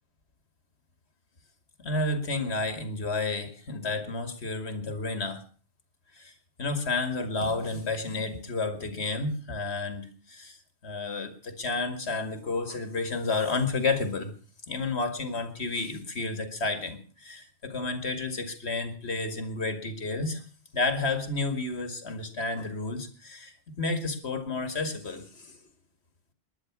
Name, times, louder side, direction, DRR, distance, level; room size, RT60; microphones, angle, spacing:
voice 1, 1.8-5.4 6.1-10.6 10.8-14.3 14.7-20.4 20.7-25.6, left 3 dB, 80° left, 9 dB, 2.3 m, -31 dB
20.0 x 10.5 x 6.0 m, 0.40 s
omnidirectional pair, 1.1 m